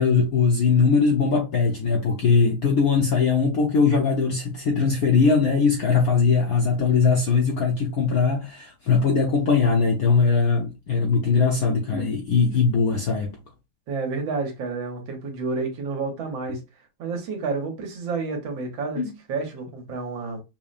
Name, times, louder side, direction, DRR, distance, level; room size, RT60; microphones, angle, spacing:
voice 1, 0.0-13.3 19.0-19.1, left 5 dB, 65° left, 0.9 m, -20 dB
voice 2, 13.9-16.6 17.0-20.4, right 4 dB, 70° right, 1.7 m, -30 dB
5.7 x 2.1 x 2.4 m
omnidirectional pair, 2.3 m